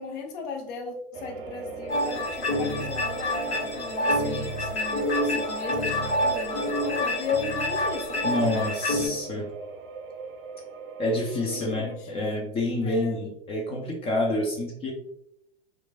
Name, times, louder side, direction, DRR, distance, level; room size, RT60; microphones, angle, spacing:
voice 1, 0.0-8.2 11.4-12.1 12.8-13.2, left 4 dB, 50° left, 4 dB, 0.7 m, -36 dB
sound 1, 1.1-12.0, right 4 dB, 55° right, 0.5 m, -39 dB
sound 2, 1.9-9.1, left 1 dB, 80° left, 1.0 m, -27 dB
voice 2, 8.2-9.5 11.0-14.9, left 1 dB, 20° left, 0 dB, 0.4 m, -28 dB
3.0 x 2.3 x 2.3 m, 0.75 s
hypercardioid pair, 105°, 33 cm